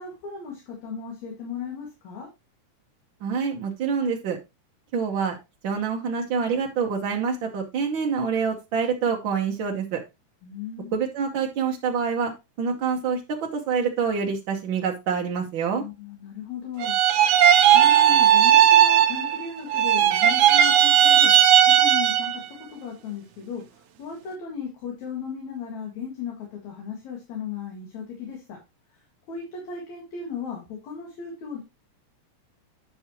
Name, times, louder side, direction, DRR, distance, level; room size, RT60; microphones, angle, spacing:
voice 1, 0.0-2.3 10.4-11.0 15.8-17.0 17.7-21.3 21.7-22.4 22.7-28.6 29.3-31.6, left 6 dB, 70° left, 0 dB, 3.2 m, -36 dB
voice 2, 3.2-4.4 4.9-5.4 5.6-10.0 10.9-12.3 12.6-15.8, right 6 dB, 60° right, 1 dB, 1.3 m, -26 dB
sound 1, 16.8-19.4 19.7-22.4, right 10 dB, 80° right, 2.2 m, -17 dB
9.8 x 5.8 x 2.9 m, 0.24 s
omnidirectional pair, 3.4 m